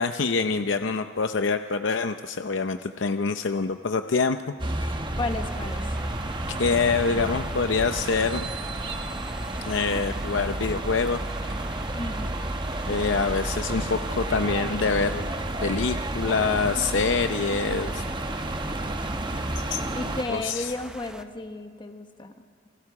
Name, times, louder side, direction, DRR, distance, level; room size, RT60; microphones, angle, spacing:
voice 1, 0.0-4.4 4.8-5.1 6.6-8.5 9.7-11.2 12.9-15.3 15.6-18.0 19.6-19.8 20.3-20.7, left 4 dB, 80° left, 8 dB, 0.6 m, -25 dB
sound 1, 4.6-20.2, right 1 dB, 25° right, 1.1 m, -31 dB
sound 2, 5.1-21.2, right 1 dB, 5° right, 0.7 m, -43 dB
voice 2, 5.2-6.0 11.9-12.4 19.9-22.7, left 2 dB, 25° left, 6 dB, 1.0 m, -33 dB
28.5 x 22.5 x 4.8 m, 2.2 s
head